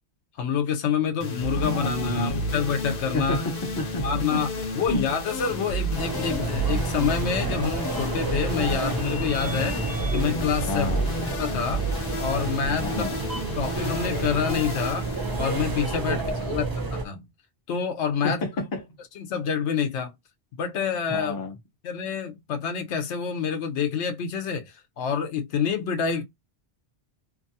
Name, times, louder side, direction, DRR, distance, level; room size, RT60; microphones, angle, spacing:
voice 1, 0.4-3.4 4.0-9.8 10.1-10.9 11.4-11.9 12.2-12.9 13.6-15.1 15.4-17.2 17.7-18.4 19.2-20.1 20.6-21.3 21.8-26.2, left 7 dB, 90° left, 1.0 m, -27 dB
sound 1, 1.2-16.6, right 1 dB, 55° left, 0.9 m, -31 dB
voice 2, 1.5-2.6 3.1-4.4 4.9-5.0 10.7-11.0 12.8-13.2 16.1-16.2 16.4-16.6 18.2-18.8 21.1-21.5, left 1 dB, 25° left, 0.5 m, -30 dB
sound 2, 5.9-17.0, right 3 dB, 25° right, 0.5 m, -30 dB
2.8 x 2.3 x 2.7 m
omnidirectional pair, 1.1 m